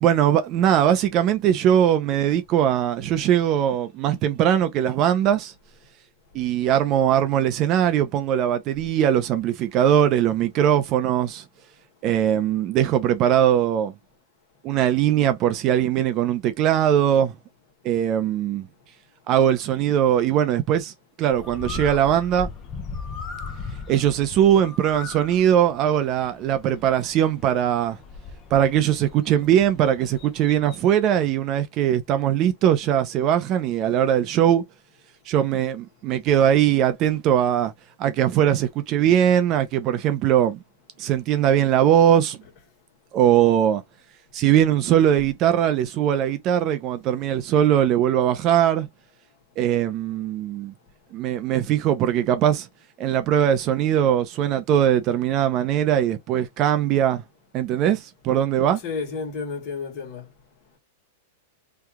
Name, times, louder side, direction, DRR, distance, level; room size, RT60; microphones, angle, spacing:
voice 1, 0.0-5.5 6.3-11.4 12.0-13.9 14.6-17.3 17.8-18.7 19.3-20.9 21.2-22.5 23.9-28.0 28.5-34.6 35.3-37.7 38.0-40.6 41.0-42.4 43.1-43.8 44.3-48.9 49.6-50.7 51.1-52.7 53.0-57.2 57.5-58.8, right 10 dB, 35° right, 0.5 m, -20 dB
Bird, 21.3-30.9, left 4 dB, 25° left, 0.8 m, -38 dB
voice 2, 58.8-60.3, left 4 dB, 40° left, 1.4 m, -31 dB
2.8 x 2.3 x 3.5 m
supercardioid pair, 145°, 0 cm